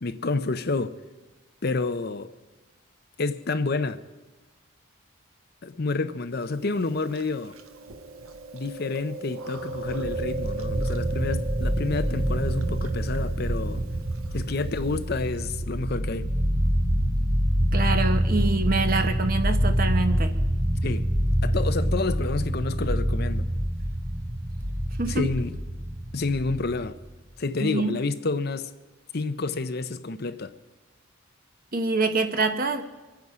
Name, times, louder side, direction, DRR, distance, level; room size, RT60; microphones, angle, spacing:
voice 1, 0.0-0.9 1.6-2.3 3.2-4.0 5.6-7.5 8.5-13.8 14.3-16.3 20.8-21.0 21.4-23.4 25.1-25.5 26.1-26.9 27.4-28.7 29.1-30.5, left 3 dB, 50° left, 0.6 m, -29 dB
Chewing mastication, 6.4-15.4, right 3 dB, 85° right, 1.3 m, -38 dB
sound 1, 9.7-27.1, equal, 60° right, 1.6 m, -26 dB
voice 2, 17.7-20.4 25.0-25.3 27.6-28.0 31.7-32.8, right 3 dB, 45° right, 1.1 m, -25 dB
24.0 x 9.5 x 4.9 m
head